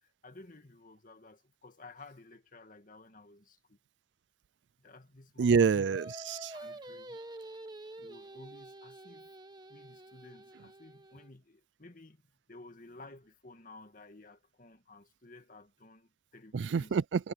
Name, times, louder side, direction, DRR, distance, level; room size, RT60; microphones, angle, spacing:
voice 1, 0.0-3.8 4.8-5.9 6.5-7.2 8.0-9.3 9.7-12.2 12.5-16.9, left 2 dB, 50° left, 2.1 m, -54 dB
voice 2, 5.4-6.5 16.5-17.3, right 5 dB, 80° right, 0.4 m, -27 dB
Singing, 5.9-11.3, right 1 dB, 25° right, 1.4 m, -48 dB
head